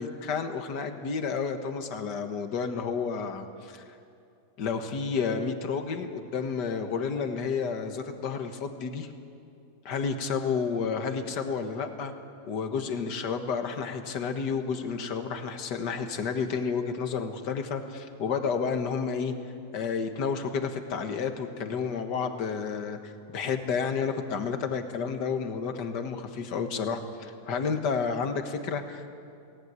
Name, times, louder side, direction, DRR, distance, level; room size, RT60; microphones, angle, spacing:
voice 1, 0.0-3.8 4.6-9.1 9.9-12.1 12.5-19.3 19.7-29.1, left 5 dB, 60° left, 7 dB, 2.0 m, -31 dB
22.5 x 18.0 x 9.6 m, 2.5 s
omnidirectional pair, 2.1 m